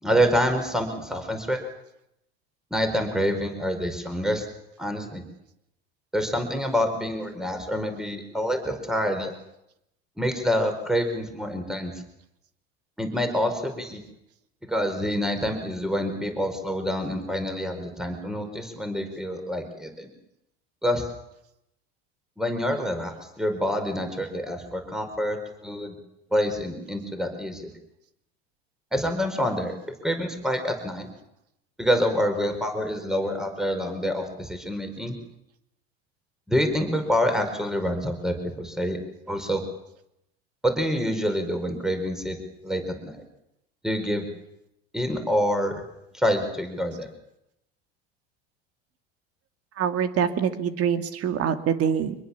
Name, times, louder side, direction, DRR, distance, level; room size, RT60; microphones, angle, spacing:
voice 1, 0.0-1.6 2.7-4.5 4.8-5.2 6.1-9.3 10.2-11.9 13.0-14.0 14.7-20.1 20.8-21.0 22.4-25.9 26.3-27.7 28.9-29.7 30.0-31.1 31.8-35.2 36.5-39.0 39.3-39.6 40.6-42.4 42.6-43.2 43.8-44.3 44.9-45.7 46.1-47.1, equal, ahead, 6 dB, 5.0 m, -27 dB
voice 2, 49.8-52.1, right 8 dB, 50° right, 8 dB, 2.5 m, -25 dB
24.5 x 21.5 x 7.3 m, 0.83 s
hypercardioid pair, 90°, 31 cm